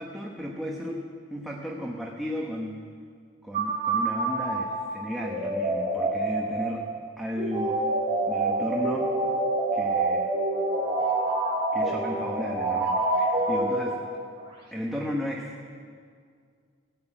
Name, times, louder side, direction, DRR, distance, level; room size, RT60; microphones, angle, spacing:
voice 1, 0.0-2.9 3.4-6.9 7.2-7.8 8.3-9.1 9.7-10.3 11.7-14.0 14.7-15.5, equal, ahead, -2 dB, 0.9 m, -34 dB
sound 1, 3.5-14.3, right 2 dB, 30° right, 3.5 m, -27 dB
17.0 x 8.1 x 8.9 m, 2.1 s
head